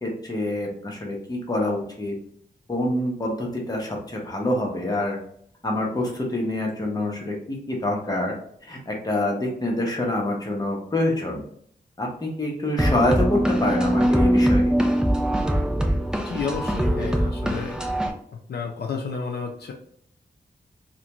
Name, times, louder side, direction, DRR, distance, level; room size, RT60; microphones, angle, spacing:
voice 1, 0.0-2.1 2.7-5.2 5.6-8.3 8.7-11.4 12.0-14.7, left 1 dB, 20° left, -1 dB, 0.8 m, -26 dB
sound 1, 12.8-18.1, equal, 5° right, 0.3 m, -22 dB
voice 2, 16.2-17.8 18.3-19.7, left 5 dB, 70° left, 1 dB, 0.4 m, -31 dB
2.4 x 2.2 x 2.9 m, 0.64 s
wide cardioid pair, 105°, 17 cm